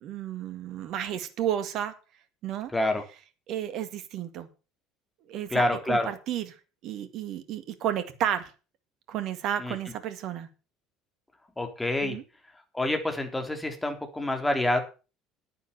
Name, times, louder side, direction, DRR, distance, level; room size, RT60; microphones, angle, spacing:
voice 1, 0.0-1.9 2.4-2.7 3.5-4.5 5.3-6.5 6.8-8.5 9.1-10.5 12.0-12.2, right 10 dB, 50° right, 11 dB, 1.9 m, -32 dB
voice 2, 2.7-3.0 5.5-6.1 9.6-9.7 11.6-12.2 12.7-14.8, left 1 dB, 10° left, 5 dB, 3.6 m, -27 dB
9.8 x 9.7 x 6.7 m, 0.33 s
figure-of-eight pair, 60°, 0 cm